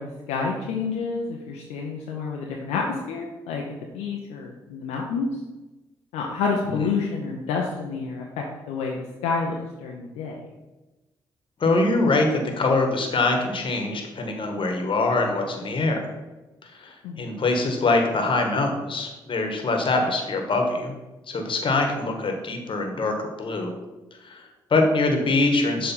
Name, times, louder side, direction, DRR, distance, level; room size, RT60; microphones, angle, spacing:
voice 1, 0.0-3.6 3.9-5.4 6.1-10.4 17.0-17.3, left 4 dB, 75° left, -1 dB, 0.7 m, -29 dB
voice 2, 11.6-16.1 16.6-20.9 21.3-23.7 24.2-25.9, left 2 dB, 50° left, 4 dB, 1.4 m, -24 dB
6.9 x 3.3 x 5.5 m, 1.1 s
hypercardioid pair, 40°, 11 cm